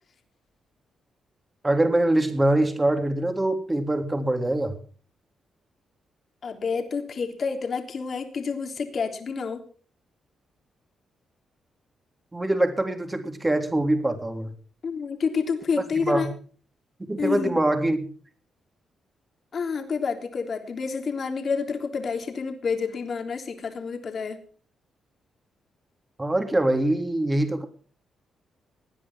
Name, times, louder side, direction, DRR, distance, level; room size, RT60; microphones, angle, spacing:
voice 1, 1.6-4.7 12.3-14.5 16.0-16.3 17.0-18.1 26.2-27.7, right 1 dB, 20° right, 7 dB, 3.4 m, -23 dB
voice 2, 6.4-9.6 14.8-16.3 17.2-17.6 19.5-24.4, left 5 dB, 55° left, 5 dB, 3.4 m, -29 dB
19.0 x 10.0 x 6.1 m, 0.43 s
cardioid pair, 75°, 0 cm